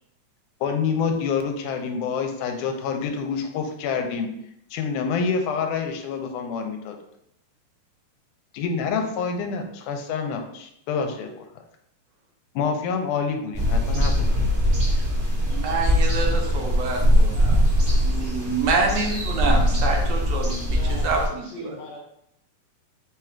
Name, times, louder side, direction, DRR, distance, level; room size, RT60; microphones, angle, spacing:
voice 1, 0.6-4.3 4.7-7.0 8.5-11.4 12.6-14.5, left 5 dB, 85° left, 5 dB, 2.1 m, -27 dB
sound 1, 13.5-21.3, equal, 50° right, 0.6 m, -21 dB
voice 2, 15.5-17.7 18.0-20.6 20.9-21.8, right 4 dB, 70° right, 1 dB, 1.6 m, -27 dB
voice 3, 20.7-22.0, left 1 dB, 65° left, -2 dB, 1.8 m, -39 dB
4.7 x 2.4 x 4.4 m, 0.74 s
omnidirectional pair, 3.5 m